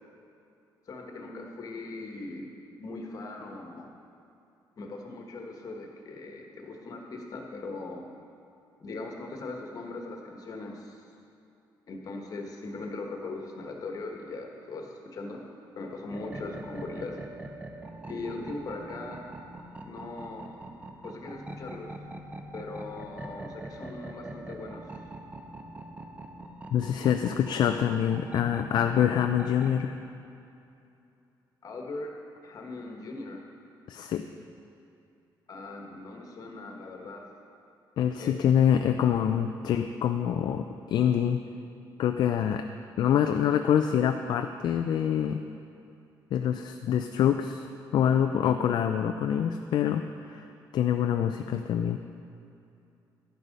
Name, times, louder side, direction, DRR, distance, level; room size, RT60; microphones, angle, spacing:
voice 1, 0.9-2.5 2.8-3.9 4.8-8.1 8.8-11.0 11.9-15.4 15.7-17.2 18.1-19.2 19.8-20.7 21.0-21.9 22.5-24.9 31.6-32.1 32.4-33.5 35.5-37.3 38.2-38.4, left 3 dB, 50° left, 1 dB, 1.3 m, -39 dB
sound 1, 16.1-29.8, right 1 dB, 15° right, 0.8 m, -43 dB
voice 2, 26.7-29.9 33.9-34.2 38.0-41.4 42.0-42.6 43.0-45.5 46.3-50.4 50.7-52.0, left 9 dB, 65° left, 6 dB, 0.4 m, -25 dB
11.0 x 6.2 x 5.3 m, 2.7 s
cardioid pair, 105°, 8 cm